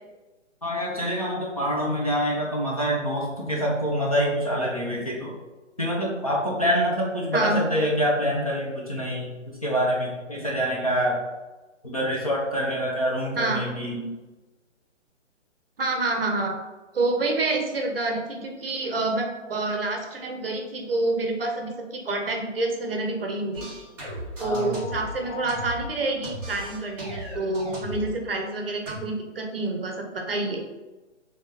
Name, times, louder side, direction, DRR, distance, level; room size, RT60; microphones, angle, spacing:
voice 1, 0.6-5.4 5.8-11.2 11.8-14.0 24.4-24.7, equal, 30° left, -4 dB, 0.5 m, -26 dB
voice 2, 15.8-16.6 16.9-23.7 24.4-30.6, right 2 dB, 50° right, 2 dB, 0.7 m, -28 dB
sound 1, 23.5-25.9 26.2-28.1 28.8-29.0, equal, 5° right, 1.1 m, -36 dB
3.6 x 3.2 x 2.7 m, 1.1 s
hypercardioid pair, 170°, 37 cm